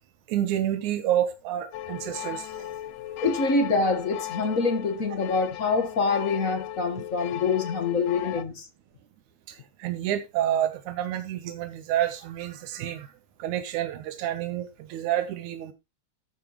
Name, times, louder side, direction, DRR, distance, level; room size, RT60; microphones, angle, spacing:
voice 1, 0.3-2.7 9.5-13.1 13.4-15.7, right 11 dB, 90° right, 2.4 m, -29 dB
sound 1, 1.7-8.4, left 14 dB, 75° left, 1.8 m, -37 dB
voice 2, 3.2-8.6, left 4 dB, 45° left, 1.1 m, -25 dB
14.0 x 8.5 x 3.0 m
omnidirectional pair, 3.3 m